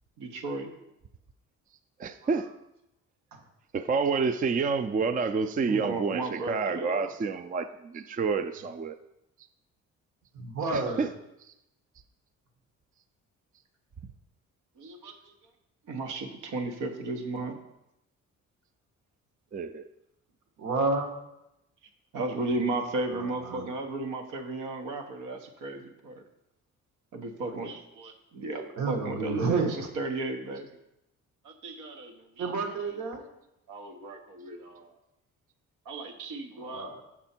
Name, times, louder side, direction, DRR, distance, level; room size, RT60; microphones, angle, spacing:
voice 1, 0.2-0.7 5.6-7.1 14.8-15.4 15.9-17.6 22.1-26.2 27.1-30.7 31.4-33.0 33.7-34.9 35.8-36.9, right 2 dB, 85° right, 4 dB, 1.2 m, -35 dB
voice 2, 2.0-2.5 3.7-9.0 10.7-11.1 19.5-19.8, right 5 dB, 30° right, 11 dB, 0.4 m, -29 dB
voice 3, 10.3-11.1 20.6-21.2 22.7-23.7 28.8-29.9 32.4-33.2 36.5-37.0, right 3 dB, 65° right, 5 dB, 1.6 m, -31 dB
6.8 x 6.0 x 4.4 m, 0.87 s
cardioid pair, 90°, 30 cm